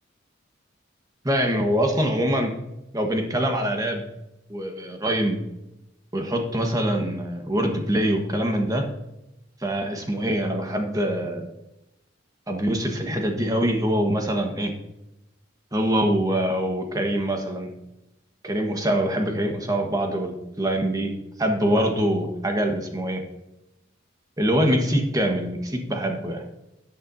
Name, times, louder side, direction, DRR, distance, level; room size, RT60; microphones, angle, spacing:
voice 1, 1.2-2.6 2.9-4.0 4.5-5.4 6.1-8.9 9.6-11.5 12.5-14.7 15.7-17.7 18.4-21.1 21.4-23.2 24.4-26.4, equal, 20° right, 3 dB, 1.3 m, -24 dB
13.5 x 8.7 x 2.7 m, 0.91 s
head